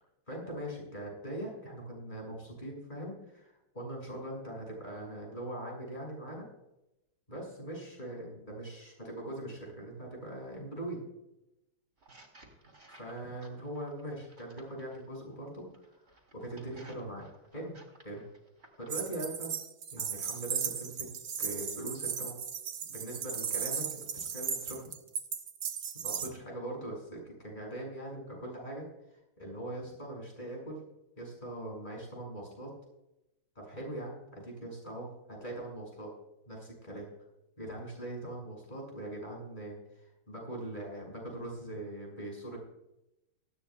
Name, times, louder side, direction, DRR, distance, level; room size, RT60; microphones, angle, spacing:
voice 1, 0.3-6.5 7.3-11.0 12.9-17.7 18.0-18.2 18.8-19.5 19.9-21.1 21.4-22.4 22.9-24.9 26.0-28.8 29.4-30.8 31.2-32.7 33.5-36.1 36.5-37.1 37.6-42.6, right 1 dB, 25° left, -1 dB, 6.6 m, -41 dB
sound 1, 12.0-15.0 15.7-19.0, right 2 dB, 40° right, 3.5 m, -58 dB
sound 2, 18.9-26.3, right 7 dB, 60° right, 1.6 m, -36 dB
19.0 x 16.0 x 2.4 m, 0.88 s
omnidirectional pair, 1.9 m